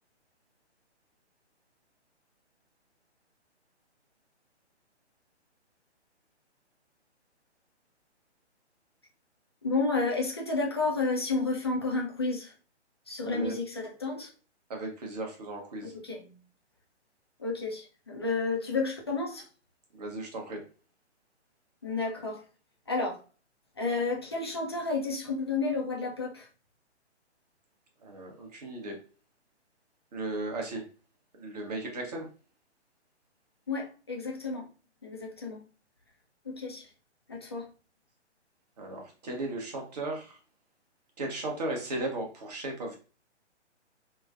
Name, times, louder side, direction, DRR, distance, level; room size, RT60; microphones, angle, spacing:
voice 1, 9.6-12.5 13.1-14.3 15.8-16.2 17.4-19.4 21.8-22.4 22.9-23.2 23.8-26.5 33.7-34.7 35.0-35.6 36.5-36.9 37.3-37.7, left 3 dB, 25° left, 0 dB, 0.4 m, -31 dB
voice 2, 13.2-13.6 14.7-15.9 19.9-20.6 28.0-29.0 30.1-30.8 31.4-32.3 38.8-40.4 41.2-43.0, right 2 dB, 35° right, 1 dB, 0.9 m, -36 dB
3.2 x 2.1 x 2.3 m, 0.35 s
figure-of-eight pair, 135°, 35 cm